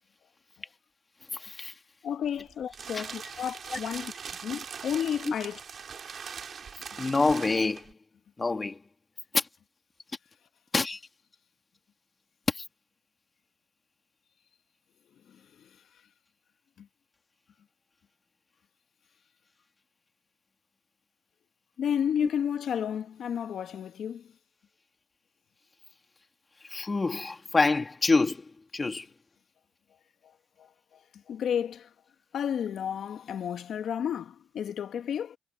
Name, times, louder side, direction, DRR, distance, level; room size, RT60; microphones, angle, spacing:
voice 1, 1.3-1.7 2.9-3.0 3.7-3.8 5.2-5.3 7.0-7.9 8.4-8.8 9.3-9.5 10.7-11.0 12.5-12.6 22.2-22.3 26.7-29.1, left 3 dB, 25° left, 3.0 m, -27 dB
voice 2, 2.0-5.6 15.6-15.7 16.8-16.9 21.8-24.2 30.6-30.7 31.3-31.9 32.3-35.4, left 8 dB, 65° left, 2.0 m, -32 dB
sound 1, 2.2-7.9, right 6 dB, 50° right, 3.5 m, -41 dB
cardioid pair, 90°, 0 cm